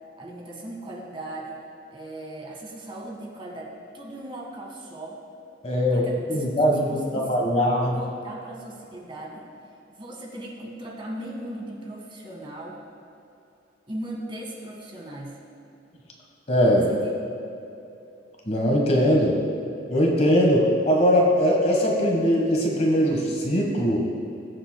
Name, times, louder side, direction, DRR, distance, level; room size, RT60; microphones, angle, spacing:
voice 1, 0.2-1.6 1.9-5.2 5.9-7.6 7.9-9.4 10.0-12.8 13.9-15.4 16.8-17.1, right 1 dB, 30° right, -2 dB, 1.7 m, -38 dB
voice 2, 5.6-8.0 16.5-16.9 18.5-19.4 19.9-24.1, equal, 35° left, -1 dB, 1.3 m, -21 dB
20.0 x 7.6 x 2.2 m, 2.8 s
head